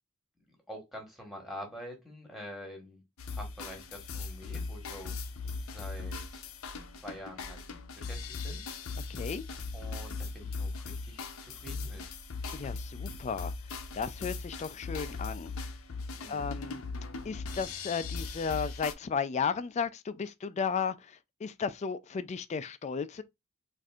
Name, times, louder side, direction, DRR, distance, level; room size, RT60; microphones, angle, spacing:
voice 1, 0.5-3.0 3.3-6.5 7.0-7.6 8.0-9.3 9.7-12.1 16.1-16.6, equal, ahead, 1.3 m, -47 dB
sound 1, 3.2-18.9, left 4 dB, 75° left, 0.6 m, -39 dB
voice 2, 9.1-9.4 12.5-13.5 13.9-15.5 16.3-16.8 17.2-23.2, left 6 dB, 35° left, 0.3 m, -34 dB
4.2 x 2.6 x 2.3 m
head